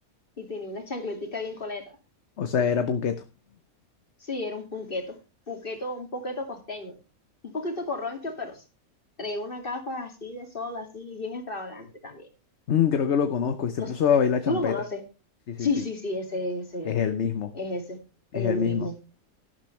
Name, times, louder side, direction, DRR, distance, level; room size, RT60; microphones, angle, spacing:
voice 1, 0.4-1.8 4.2-5.2 5.5-7.0 7.4-8.6 9.2-12.3 13.8-13.9 14.5-15.0 15.6-17.0 17.5-18.0 18.3-19.0, left 2 dB, 35° left, 3 dB, 2.7 m, -32 dB
voice 2, 2.4-3.2 12.7-14.7 15.5-15.7 16.9-17.5 18.3-18.9, left 7 dB, 55° left, 9 dB, 1.1 m, -24 dB
12.0 x 12.0 x 3.3 m, 0.30 s
omnidirectional pair, 1.5 m